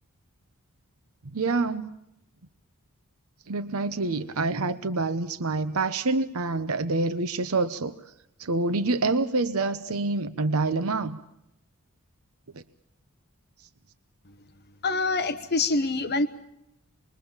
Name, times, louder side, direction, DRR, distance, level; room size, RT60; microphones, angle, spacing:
voice 1, 1.3-1.9 3.5-7.9 8.4-11.2 12.5-12.6, right 3 dB, 75° right, 10 dB, 0.9 m, -27 dB
voice 2, 14.8-16.3, left 3 dB, 50° left, 10 dB, 1.1 m, -25 dB
26.5 x 22.0 x 7.3 m, 0.84 s
head